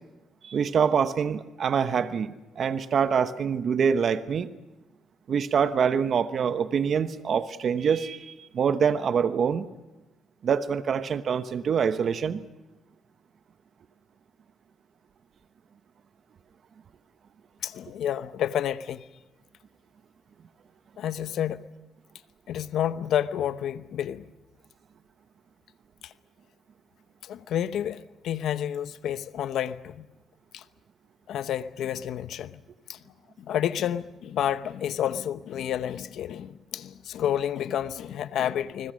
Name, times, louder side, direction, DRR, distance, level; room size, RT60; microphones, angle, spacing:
voice 1, 0.4-4.5 5.3-9.7 10.4-12.5, right 7 dB, 55° right, 1.1 m, -25 dB
voice 2, 17.6-19.1 21.0-21.7 22.5-24.3 26.0-26.1 27.2-30.1 30.5-30.6 31.3-32.6 32.9-33.0 33.4-38.9, left 10 dB, 75° left, 0.9 m, -30 dB
29.5 x 21.0 x 6.4 m
cardioid pair, 90°, 0 cm